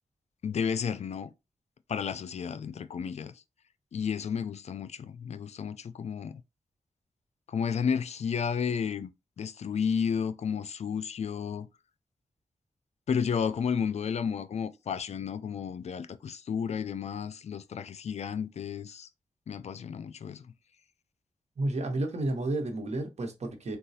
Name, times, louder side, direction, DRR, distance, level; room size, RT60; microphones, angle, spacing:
voice 1, 0.4-1.3 1.9-3.3 3.9-6.4 7.5-9.1 9.4-11.7 13.1-19.1 19.5-20.5, left 7 dB, 65° left, 0.4 m, -32 dB
voice 2, 21.6-23.8, right 2 dB, 65° right, 1.0 m, -31 dB
3.9 x 2.3 x 2.7 m
cardioid pair, 55°, 12 cm